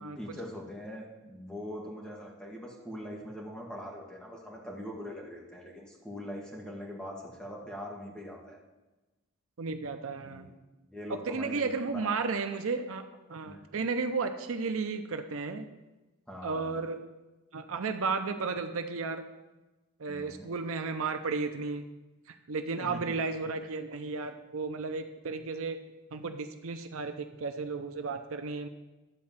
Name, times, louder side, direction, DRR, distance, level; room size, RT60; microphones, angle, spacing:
voice 1, 0.0-8.6 10.2-10.5 10.9-12.1 13.4-13.8 16.3-16.8 20.1-20.5 22.8-23.2, equal, 5° left, -2 dB, 1.7 m, -42 dB
voice 2, 9.6-10.5 11.1-15.7 16.4-17.0 17.5-19.2 20.0-21.8 22.3-25.8 26.1-28.7, right 4 dB, 70° right, 8 dB, 0.6 m, -33 dB
11.5 x 4.3 x 7.3 m, 1.1 s
head